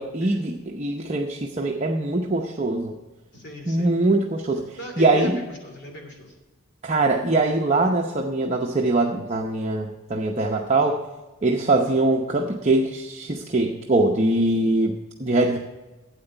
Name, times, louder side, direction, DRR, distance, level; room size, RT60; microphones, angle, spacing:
voice 1, 0.0-2.9 3.7-5.4 6.8-11.0 11.4-15.6, right 2 dB, 30° right, 0 dB, 0.8 m, -22 dB
voice 2, 3.3-3.9 4.7-6.3, left 1 dB, 50° left, 2 dB, 2.8 m, -38 dB
12.5 x 8.9 x 4.5 m, 1.2 s
head